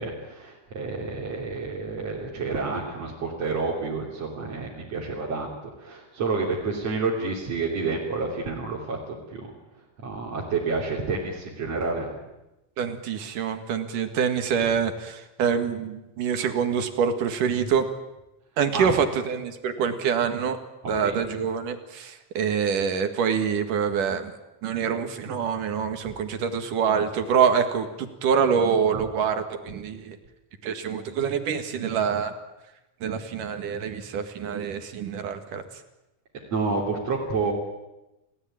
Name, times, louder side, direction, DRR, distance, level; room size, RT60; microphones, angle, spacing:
voice 1, 0.0-5.5 5.8-12.2 14.6-14.7 18.7-19.0 20.8-21.2 36.3-37.5, right 4 dB, 50° right, -3 dB, 4.3 m, -29 dB
voice 2, 12.8-17.9 18.6-20.6 20.9-24.3 24.6-30.2 30.6-32.3 33.0-35.6, right 7 dB, 80° right, 7 dB, 3.5 m, -25 dB
29.5 x 18.0 x 9.1 m, 0.98 s
omnidirectional pair, 3.7 m